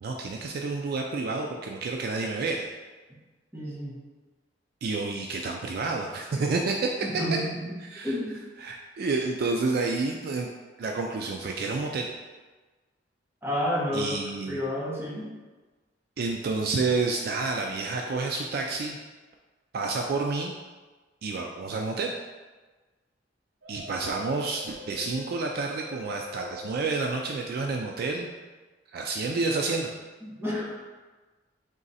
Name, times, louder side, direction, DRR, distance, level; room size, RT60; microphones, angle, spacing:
voice 1, 0.0-2.7 4.8-6.9 7.9-8.1 8.6-10.5 10.8-12.1 13.9-14.6 16.2-19.0 19.7-20.5 21.2-22.1 23.7-28.3 28.9-29.9, right 3 dB, 55° right, 1 dB, 0.3 m, -29 dB
voice 2, 3.5-4.0 7.0-7.8 8.0-8.4 13.4-15.3 30.2-30.8, equal, 15° right, -6 dB, 1.0 m, -30 dB
sound 1, 23.6-27.8, right 1 dB, 85° right, 1.1 m, -45 dB
3.8 x 3.0 x 4.0 m, 1.3 s
head